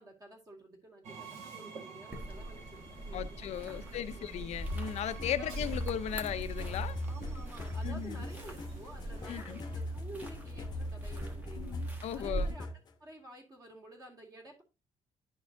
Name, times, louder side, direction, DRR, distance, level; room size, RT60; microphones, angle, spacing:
voice 1, 0.0-4.4 5.3-5.6 7.1-11.8 12.1-14.6, right 1 dB, 30° right, 1.9 m, -51 dB
Train, 1.0-10.2, right 5 dB, 55° right, 1.5 m, -51 dB
sound 1, 2.1-12.5, right 1 dB, 10° right, 1.2 m, -42 dB
voice 2, 3.1-7.0 7.8-8.2 9.3-9.6 11.6-12.5, left 10 dB, 60° left, 0.6 m, -37 dB
sound 2, 4.7-12.9, left 1 dB, 30° left, 0.8 m, -40 dB
11.5 x 4.3 x 2.6 m
cardioid pair, 165°, 13 cm